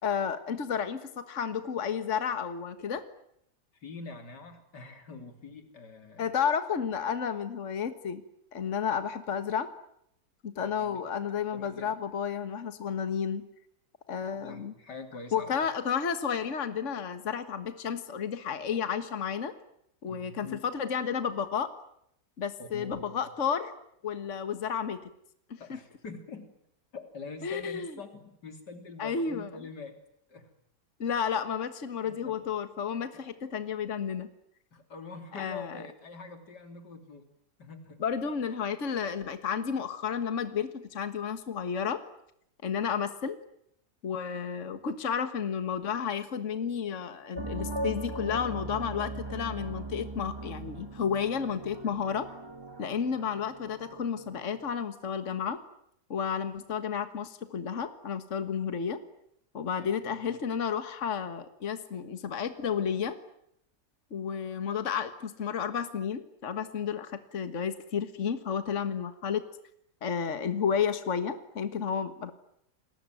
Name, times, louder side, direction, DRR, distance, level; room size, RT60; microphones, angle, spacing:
voice 1, 0.0-3.0 6.2-8.2 8.5-9.7 10.4-13.5 14.1-14.7 15.3-19.5 20.0-21.7 22.4-23.7 24.0-25.0 25.5-25.8 27.4-27.9 29.0-29.5 31.0-34.3 35.4-35.8 38.0-42.0 42.6-43.4 44.0-52.3 52.8-55.6 56.1-59.0 59.5-63.2 64.1-69.4 70.0-72.3, left 7 dB, 50° left, 10 dB, 1.9 m, -32 dB
voice 2, 3.7-6.3 10.6-11.0 11.5-12.0 14.3-15.6 20.1-20.6 22.6-23.2 25.6-26.6 26.9-30.0 30.3-30.5 32.0-32.4 33.1-33.3 34.7-37.3 37.6-38.0 59.8-60.4, left 4 dB, 90° left, 7 dB, 3.9 m, -45 dB
sound 1, 47.3-54.7, right 2 dB, 15° right, 1.8 m, -39 dB
29.0 x 21.0 x 9.3 m, 0.76 s
omnidirectional pair, 1.7 m